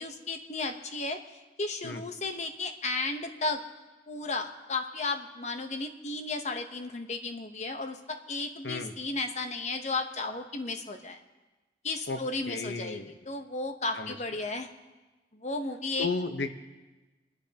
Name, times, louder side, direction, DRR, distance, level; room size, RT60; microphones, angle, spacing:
voice 1, 0.0-3.6 4.1-11.2 11.8-14.7 15.3-16.1, left 3 dB, 40° left, 6 dB, 0.9 m, -34 dB
voice 2, 12.5-13.1 13.9-14.1 16.0-16.5, left 3 dB, 80° left, 7 dB, 1.0 m, -33 dB
28.5 x 10.0 x 2.9 m, 1.2 s
head